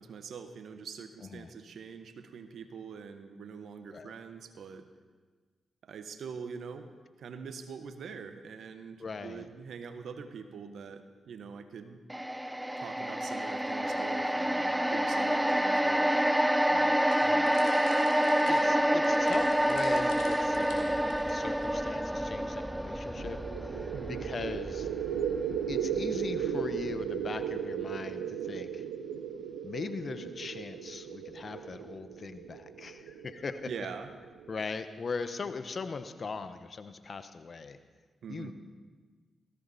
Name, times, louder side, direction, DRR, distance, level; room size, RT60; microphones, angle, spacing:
voice 1, 0.0-4.9 5.8-12.0 12.8-16.1 23.9-24.3 33.6-34.1 38.2-38.5, right 6 dB, 70° right, 9 dB, 1.2 m, -44 dB
voice 2, 9.0-9.5 16.7-16.9 17.2-17.5 18.5-24.9 25.7-28.8 29.6-33.7 34.5-37.8 38.3-38.5, left 4 dB, 50° left, 10 dB, 1.1 m, -40 dB
sound 1, 12.1-26.4 26.8-27.0, equal, 5° right, 0.7 m, -28 dB
sound 2, 17.1-21.8, left 4 dB, 85° left, 2.6 m, -51 dB
sound 3, 23.2-34.6, right 8 dB, 90° right, 0.8 m, -36 dB
18.5 x 15.0 x 4.3 m, 1.5 s
hypercardioid pair, 40°, 0 cm